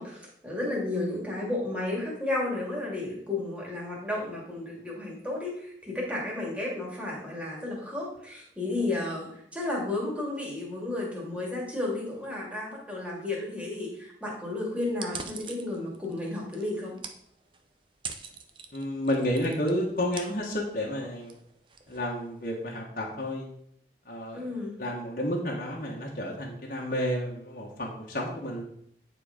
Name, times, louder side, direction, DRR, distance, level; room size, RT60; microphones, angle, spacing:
voice 1, 0.0-17.0 24.3-24.8, left 2 dB, 5° right, -3 dB, 2.4 m, -33 dB
sound 1, 14.9-22.6, right 5 dB, 30° right, 0.7 m, -45 dB
voice 2, 18.7-21.3 21.9-23.5 24.0-24.5 24.8-28.6, equal, 50° left, -3 dB, 1.5 m, -31 dB
9.8 x 4.5 x 5.1 m, 0.68 s
head